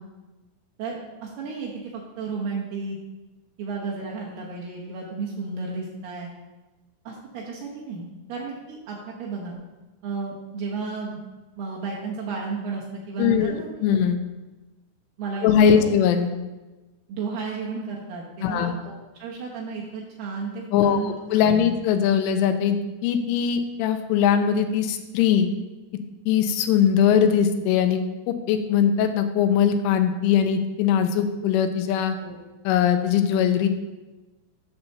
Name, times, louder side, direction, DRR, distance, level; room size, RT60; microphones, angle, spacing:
voice 1, 0.8-3.0 3.6-6.3 7.1-9.6 10.0-11.2 11.6-13.7 15.2-15.9 17.1-18.9 19.2-21.6 32.2-32.4, right 4 dB, 70° right, -3 dB, 2.6 m, -33 dB
voice 2, 13.2-13.6 13.8-14.2 15.4-16.3 18.4-18.7 20.7-22.8 23.0-25.5 26.3-28.0 28.3-32.2 32.7-33.7, left 8 dB, 85° left, 8 dB, 3.1 m, -21 dB
8.9 x 4.2 x 6.7 m, 1.1 s
omnidirectional pair, 5.7 m